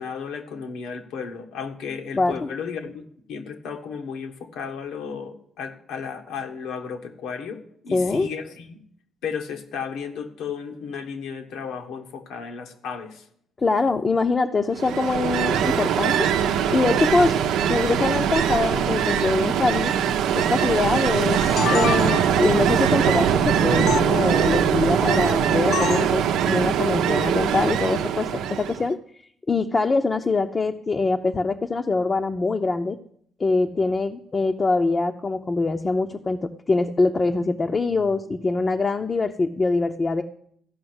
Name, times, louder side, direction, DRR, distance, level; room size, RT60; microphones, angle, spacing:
voice 1, 0.0-8.8 9.2-13.3 27.1-27.4, left 6 dB, 90° left, 4 dB, 1.5 m, -34 dB
voice 2, 2.1-2.5 7.9-8.3 13.6-16.3 16.7-17.4 17.7-19.9 20.3-21.4 21.7-29.0 29.5-33.0 33.4-40.2, left 3 dB, 30° left, 3 dB, 0.7 m, -23 dB
Ocean, 14.8-28.8, right 8 dB, 90° right, 0.7 m, -22 dB
sound 1, 21.2-22.5 23.9-24.0 25.7-26.1, left 9 dB, 65° left, 0.4 m, -27 dB
14.0 x 5.5 x 8.0 m, 0.66 s
cardioid pair, 90°, 0 cm